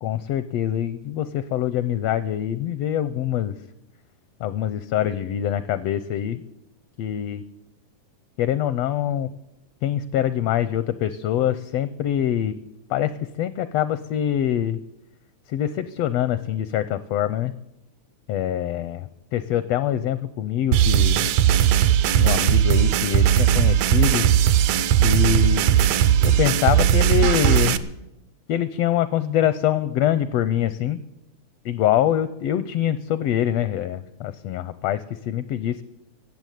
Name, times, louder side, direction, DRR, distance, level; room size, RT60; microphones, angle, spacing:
voice 1, 0.0-3.6 4.4-6.4 7.0-7.4 8.4-9.3 9.8-12.6 12.9-13.1 13.4-14.8 15.5-17.5 18.3-21.3 22.2-24.4 25.0-25.6 26.2-27.8 28.5-31.0 31.6-35.8, left 11 dB, 80° left, 14 dB, 1.5 m, -24 dB
sound 1, 20.7-27.8, right 10 dB, 75° right, 1.8 m, -18 dB
15.5 x 7.8 x 9.3 m, 0.85 s
omnidirectional pair, 3.5 m